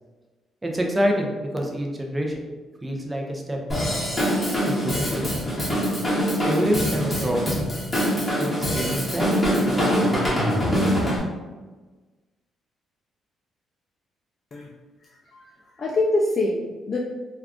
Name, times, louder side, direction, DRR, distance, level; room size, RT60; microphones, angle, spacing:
voice 1, 0.6-2.4 2.8-3.6 4.6-5.4 6.5-7.6 8.1-10.3, equal, 15° right, 1 dB, 0.5 m, -27 dB
Drum kit / Drum, 3.7-11.2, equal, 15° left, 1.1 m, -24 dB
voice 2, 15.8-17.0, left 2 dB, 40° left, -2 dB, 0.3 m, -24 dB
2.3 x 2.2 x 3.6 m, 1.3 s
cardioid pair, 90°, 0 cm